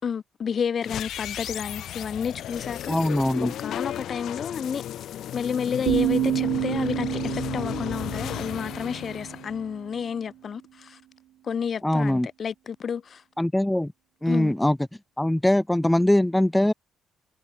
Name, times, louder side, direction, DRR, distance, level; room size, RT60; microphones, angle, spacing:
voice 1, 0.0-3.2 3.6-4.8 5.3-11.0 11.4-13.2 14.3-14.5, left 7 dB, 50° left, 5.2 m, -31 dB
sound 1, 0.8-10.0, left 11 dB, 75° left, 2.5 m, -34 dB
voice 2, 2.9-3.5 11.8-12.3 13.4-13.9 14.2-14.8 15.2-16.7, left 1 dB, 5° left, 0.9 m, -22 dB
sound 2, 5.9-9.7, right 13 dB, 80° right, 1.9 m, -28 dB
cardioid pair, 90°, 0 cm